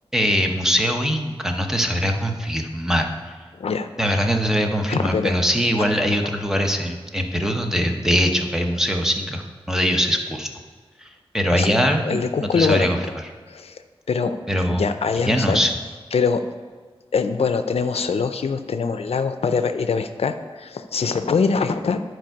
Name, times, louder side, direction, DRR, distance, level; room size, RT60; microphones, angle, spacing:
voice 1, 0.1-3.3 4.0-9.4 9.7-10.5 11.0-13.0 14.5-14.8 15.2-15.7, equal, 5° right, 3 dB, 0.9 m, -22 dB
voice 2, 3.6-3.9 4.9-5.3 6.0-6.1 11.5-11.7 12.0-12.9 13.5-13.8 14.1-14.4 14.8-15.6 16.1-16.4 17.1-22.0, left 5 dB, 85° left, 9 dB, 0.5 m, -23 dB
10.5 x 4.6 x 4.7 m, 1.5 s
wide cardioid pair, 90°, 10 cm